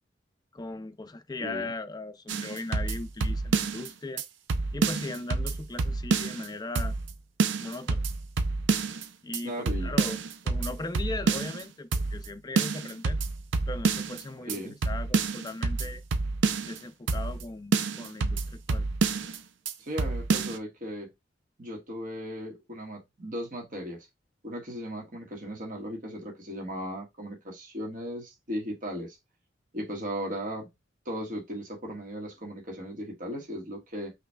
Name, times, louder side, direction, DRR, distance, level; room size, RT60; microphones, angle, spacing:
voice 1, 0.5-4.2 4.7-7.0 7.6-8.0 9.2-13.2 13.7-16.0 16.6-18.9, left 2 dB, 20° left, 0.4 m, -38 dB
voice 2, 1.4-1.7 9.4-9.9 14.4-14.8 19.8-21.1 21.6-24.1 24.4-29.2 29.7-30.7 31.0-34.1, equal, 45° right, 1.5 m, -37 dB
sound 1, 2.3-3.9 4.2-4.3 4.5-6.5 6.8-7.1 7.4-9.0 9.3-9.4 9.7-11.6 11.9-12.3 12.6-14.2 14.5-14.6 14.8-16.8 17.1-17.4 17.7-19.4 19.7-19.8 20.0-20.6, right 4 dB, 75° right, 0.5 m, -28 dB
5.7 x 3.1 x 2.2 m
head